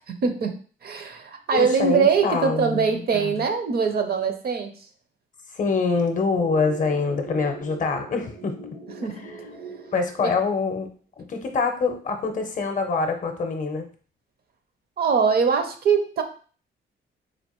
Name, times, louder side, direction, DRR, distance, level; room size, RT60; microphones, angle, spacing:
voice 1, 0.1-0.5 0.8-4.7 9.0-9.2 10.2-10.3 15.0-16.2, right 5 dB, 50° right, 6 dB, 0.5 m, -22 dB
voice 2, 1.5-3.3 5.5-8.5 9.0-9.3 9.9-10.9 11.2-13.9, left 4 dB, 40° left, 5 dB, 0.6 m, -25 dB
sound 1, 6.4-10.7, right 5 dB, 80° right, 1.4 m, -41 dB
4.3 x 2.5 x 3.0 m, 0.40 s
cardioid pair, 140°, 21 cm